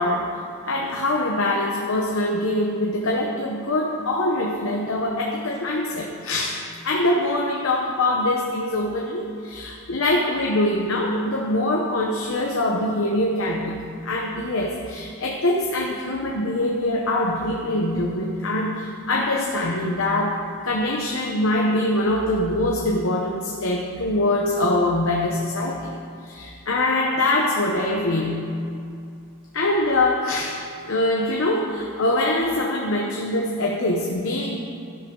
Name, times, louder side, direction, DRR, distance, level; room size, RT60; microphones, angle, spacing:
voice 1, 0.0-26.0 26.2-28.6 29.5-34.6, left 1 dB, 65° left, -1 dB, 1.0 m, -23 dB
13.0 x 11.5 x 3.9 m, 2.5 s
head